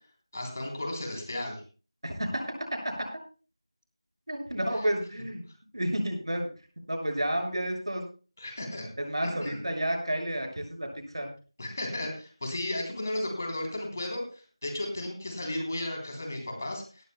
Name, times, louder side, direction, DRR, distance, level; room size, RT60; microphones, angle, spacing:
voice 1, 0.3-1.6 8.4-8.9 9.2-9.6 11.6-17.0, left 1 dB, 30° left, 2 dB, 3.3 m, -34 dB
voice 2, 2.0-2.4 4.3-5.4 5.7-6.5 6.9-8.0 9.0-10.9 11.1-11.3, right 1 dB, 60° right, 2 dB, 6.5 m, -30 dB
18.0 x 15.0 x 2.2 m, 0.36 s
figure-of-eight pair, 175°, 3 cm